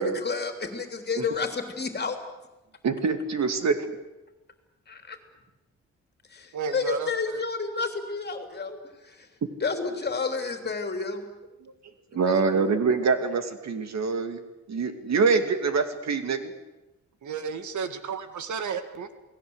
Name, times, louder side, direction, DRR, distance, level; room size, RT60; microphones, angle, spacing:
voice 1, 0.0-2.2 4.9-5.2 6.3-9.3 9.6-11.3 12.1-12.8, left 4 dB, 35° left, 6 dB, 3.4 m, -31 dB
voice 2, 2.8-3.9 12.1-14.4 14.7-16.5, right 5 dB, 65° right, 8 dB, 2.5 m, -25 dB
voice 3, 6.5-7.4 17.2-19.1, right 5 dB, 80° right, 10 dB, 2.1 m, -33 dB
29.0 x 19.0 x 8.1 m, 1.0 s
wide cardioid pair, 150°, 29 cm